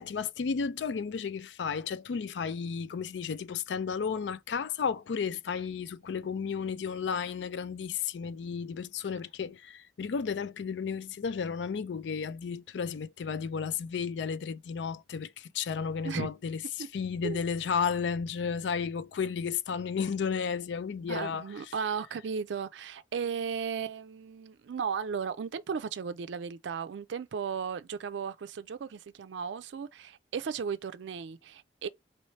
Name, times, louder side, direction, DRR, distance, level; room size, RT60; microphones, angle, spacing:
voice 1, 0.0-21.7, left 6 dB, 80° left, 0.4 m, -33 dB
voice 2, 21.1-31.9, right 6 dB, 85° right, 0.4 m, -35 dB
3.2 x 3.0 x 4.1 m
head